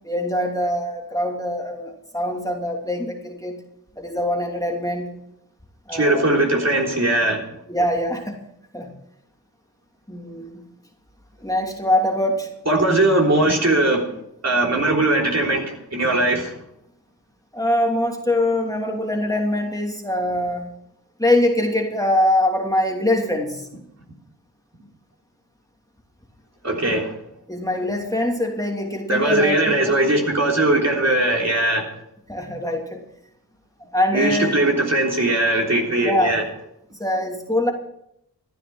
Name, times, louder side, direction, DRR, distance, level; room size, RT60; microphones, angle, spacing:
voice 1, 0.0-3.6 4.0-5.1 5.9-6.3 7.7-8.4 8.7-8.9 10.1-10.6 11.4-12.5 17.5-20.7 21.2-23.7 27.5-29.7 32.3-33.0 33.9-34.8 36.0-36.4 37.0-37.7, left 1 dB, 10° left, 0 dB, 2.9 m, -23 dB
voice 2, 5.9-7.4 12.7-14.1 14.4-16.5 26.6-27.1 29.1-31.8 34.1-36.4, right 2 dB, 40° right, 0 dB, 3.6 m, -19 dB
14.5 x 10.0 x 6.1 m, 0.77 s
cardioid pair, 40°, 39 cm